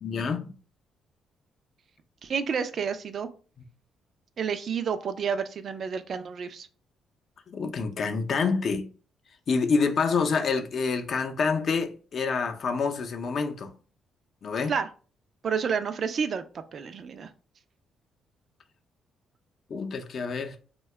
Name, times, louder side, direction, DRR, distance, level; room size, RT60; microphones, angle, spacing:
voice 1, 0.0-0.5 7.5-8.9 9.5-13.7 14.4-14.7 19.7-20.6, left 5 dB, 55° left, 0.5 m, -27 dB
voice 2, 2.2-3.3 4.4-6.7 14.7-14.9 15.4-16.4 16.7-17.3, right 6 dB, 55° right, 0.4 m, -30 dB
2.7 x 2.2 x 3.2 m
cardioid pair, 90°, 0 cm